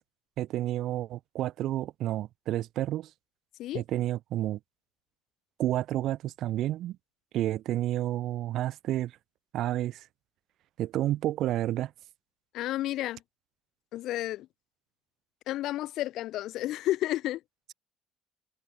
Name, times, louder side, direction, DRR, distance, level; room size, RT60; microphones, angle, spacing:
voice 1, 0.4-3.1 3.7-4.6 5.6-7.0 7.3-9.1 9.5-10.0 10.8-11.9, right 13 dB, 50° right, 4.9 m, -30 dB
voice 2, 12.5-13.2 13.9-14.5 15.5-17.4, left 15 dB, 55° left, 7.0 m, -31 dB
open air
cardioid pair, 170°, 0 cm